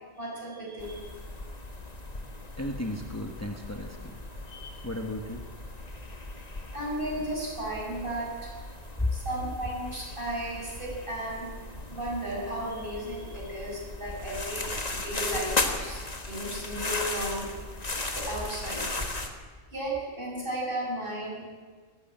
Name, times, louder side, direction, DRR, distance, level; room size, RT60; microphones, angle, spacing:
voice 1, 0.2-1.1 4.5-4.9 6.7-8.5 9.1-17.5 17.7-19.3 19.7-21.4, right 1 dB, 50° right, -4 dB, 7.6 m, -35 dB
sound 1, 0.8-19.3, left 2 dB, 35° left, 1.8 m, -37 dB
voice 2, 2.6-4.1 4.8-5.4 9.0-9.1, left 1 dB, 15° left, 3 dB, 1.4 m, -33 dB
19.5 x 15.0 x 8.9 m, 1.5 s
omnidirectional pair, 1.2 m